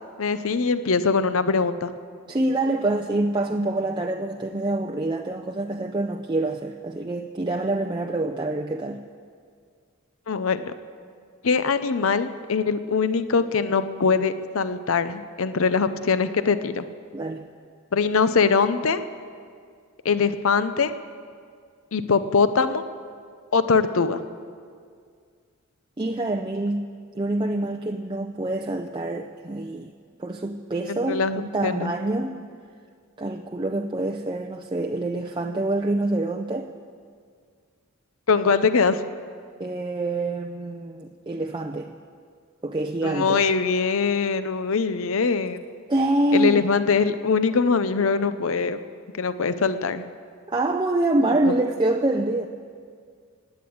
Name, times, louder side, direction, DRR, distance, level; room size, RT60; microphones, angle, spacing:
voice 1, 0.2-1.9 10.3-10.7 11.4-16.8 17.9-19.0 20.0-20.9 21.9-22.8 23.5-24.2 30.9-31.9 38.3-39.0 43.0-45.6 46.3-48.8 49.2-50.1 51.5-51.6, left 5 dB, 65° left, 12 dB, 0.6 m, -22 dB
voice 2, 2.3-9.0 17.1-17.5 26.0-29.9 30.2-32.4 33.2-36.7 39.6-41.9 42.6-43.4 45.9-46.7 50.5-52.5, right 2 dB, 20° right, 3 dB, 0.5 m, -26 dB
17.0 x 9.5 x 8.6 m, 2.1 s
head